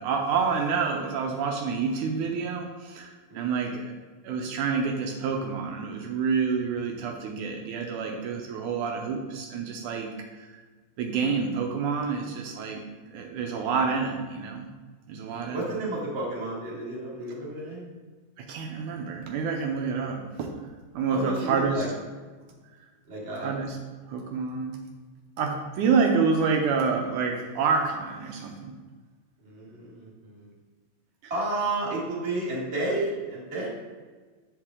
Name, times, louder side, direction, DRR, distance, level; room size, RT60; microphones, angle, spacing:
voice 1, 0.0-3.9 4.2-10.1 10.4-10.6 11.0-14.7 15.1-15.8 18.4-20.6 20.9-21.9 23.4-23.8 24.1-24.8 25.4-28.8 31.2-31.3, right 5 dB, 75° right, 2 dB, 1.9 m, -28 dB
voice 2, 3.3-3.7 15.3-17.9 21.1-21.9 23.1-23.6 29.4-30.5 31.3-33.7, right 2 dB, 35° right, -6 dB, 1.2 m, -32 dB
8.1 x 6.6 x 3.7 m, 1.4 s
omnidirectional pair, 4.1 m